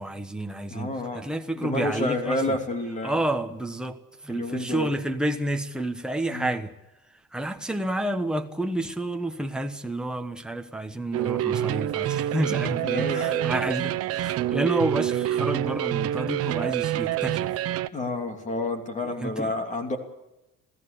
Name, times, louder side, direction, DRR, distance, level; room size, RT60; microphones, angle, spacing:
voice 1, 0.0-2.6 3.0-4.0 4.2-6.7 7.3-17.5 19.0-19.5, right 1 dB, 5° right, 1.2 m, -30 dB
voice 2, 0.7-1.2 1.5-3.1 4.3-4.9 6.3-6.6 12.8-13.5 17.9-20.0, left 2 dB, 25° left, 3.0 m, -29 dB
sound 1, 11.1-17.9, right 12 dB, 50° right, 0.9 m, -27 dB
27.5 x 16.5 x 6.9 m
cardioid pair, 180°, 30 cm